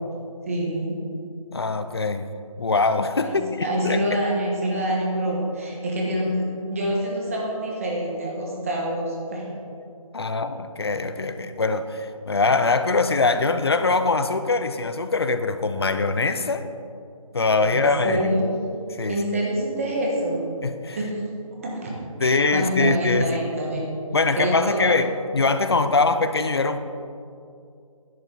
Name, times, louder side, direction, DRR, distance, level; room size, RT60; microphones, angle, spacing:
voice 1, 0.5-1.0 3.2-9.5 17.6-18.4 19.1-20.5 20.9-21.2 21.5-21.9 22.2-23.9 24.3-25.0, right 1 dB, 25° right, -2 dB, 1.3 m, -26 dB
voice 2, 1.5-2.3 2.6-4.0 10.1-16.7 17.3-18.3 18.9-19.2 20.6-21.0 22.2-23.4 24.1-26.8, left 3 dB, 45° left, 10 dB, 0.5 m, -22 dB
10.5 x 5.9 x 4.4 m, 2.5 s
figure-of-eight pair, 170°, 18 cm